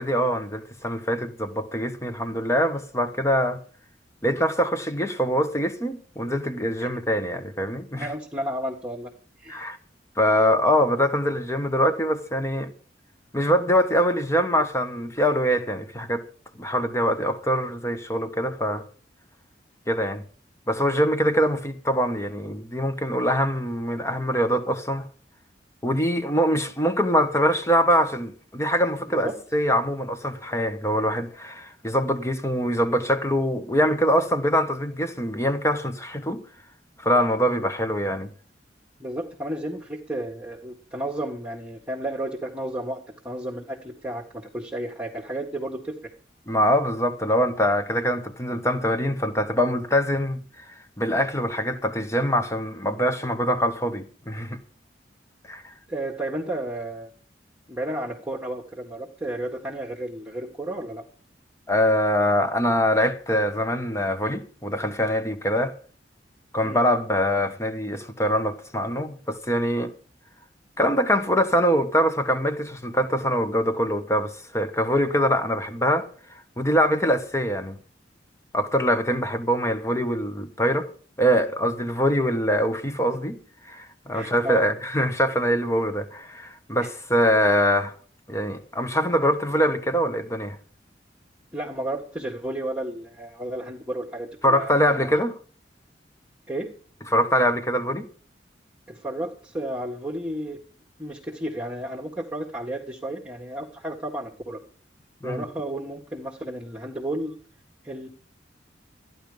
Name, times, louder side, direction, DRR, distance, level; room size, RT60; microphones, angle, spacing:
voice 1, 0.0-3.6 4.2-8.1 9.5-9.8 10.2-12.7 13.3-16.2 16.6-18.8 19.9-20.2 20.7-25.0 25.8-36.4 37.0-38.3 46.5-50.4 51.0-54.6 55.5-55.6 61.7-65.7 66.5-69.9 70.8-76.1 76.6-77.8 78.5-80.9 81.2-83.4 83.7-87.9 88.3-90.6 94.4-95.4 97.1-98.1 105.2-105.4, equal, 15° left, 1.2 m, -23 dB
voice 2, 8.0-9.1 9.4-9.8 29.2-29.4 39.0-43.0 43.2-46.1 55.9-57.1 57.7-61.0 66.6-66.8 84.1-84.6 86.8-86.9 91.5-95.1 96.5-96.7 98.9-100.6 101.0-104.6 105.2-107.3 107.8-108.1, right 1 dB, 10° right, 1.7 m, -32 dB
14.0 x 11.0 x 5.2 m
head